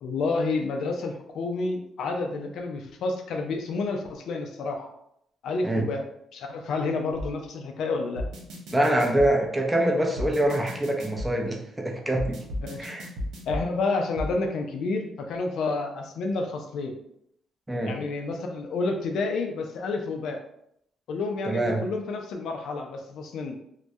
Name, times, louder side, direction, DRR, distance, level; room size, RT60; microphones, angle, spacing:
voice 1, 0.0-4.9 5.4-6.0 6.3-8.2 12.6-12.9 13.5-17.0 17.8-20.4 21.1-23.7, left 3 dB, 75° left, 3 dB, 0.3 m, -29 dB
sound 1, 7.2-7.3 8.2-9.3 10.2-11.3 12.2-13.6 14.2-14.3, left 1 dB, 85° right, 0.5 m, -33 dB
voice 2, 8.7-12.4 12.8-13.1 17.7-18.0 21.5-21.8, right 1 dB, 15° right, 0 dB, 0.5 m, -25 dB
2.2 x 2.1 x 2.7 m, 0.74 s
cardioid pair, 90°, 0 cm